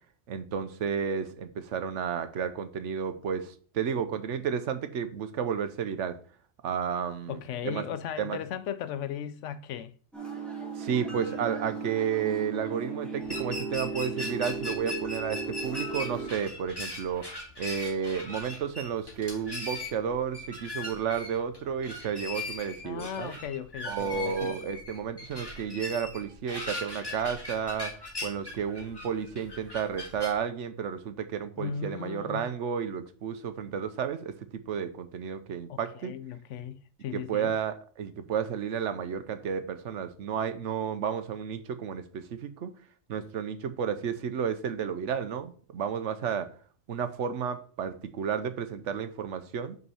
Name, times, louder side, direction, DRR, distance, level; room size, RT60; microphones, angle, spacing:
voice 1, 0.3-6.2 6.6-7.8 8.2-8.4 10.8-17.3 17.6-23.3 23.8-27.9 28.2-36.1 37.1-42.7 43.1-46.5 46.9-49.8, right 7 dB, 75° right, 1.1 m, -32 dB
voice 2, 7.3-9.9 22.8-24.6 31.6-32.5 35.7-37.5, left 8 dB, 80° left, 0.9 m, -37 dB
sound 1, 10.1-16.3, right 4 dB, ahead, 1.8 m, -36 dB
sound 2, 13.2-30.3, left 2 dB, 20° left, 1.7 m, -39 dB
5.5 x 5.4 x 5.5 m
omnidirectional pair, 1.2 m